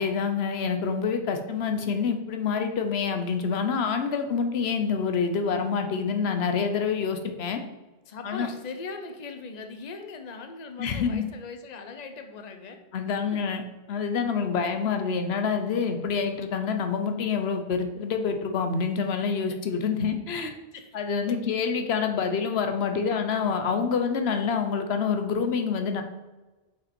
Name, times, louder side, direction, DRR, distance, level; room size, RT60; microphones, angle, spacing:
voice 1, 0.0-7.6 8.2-8.5 10.8-11.2 12.9-13.6 13.9-20.5 20.9-26.0, left 6 dB, 85° left, 6 dB, 1.0 m, -27 dB
voice 2, 8.1-12.8 13.3-13.4 19.3-19.6 20.7-21.0 21.3-21.4, left 4 dB, 45° left, 6 dB, 0.8 m, -40 dB
5.7 x 5.2 x 4.3 m, 1.1 s
omnidirectional pair, 1.0 m